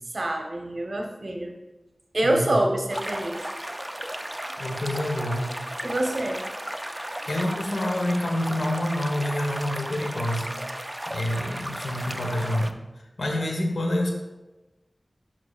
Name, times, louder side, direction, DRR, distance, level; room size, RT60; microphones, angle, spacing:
voice 1, 0.1-1.5 2.1-3.4 5.8-6.4, right 1 dB, 65° right, 2 dB, 1.0 m, -26 dB
voice 2, 2.2-2.6 4.6-5.5 7.3-10.5 11.1-14.1, left 1 dB, 85° left, 2 dB, 1.1 m, -27 dB
sound 1, 2.9-12.7, right 1 dB, 15° right, 0.4 m, -34 dB
10.0 x 5.7 x 2.4 m, 1.1 s
wide cardioid pair, 70°, 0 cm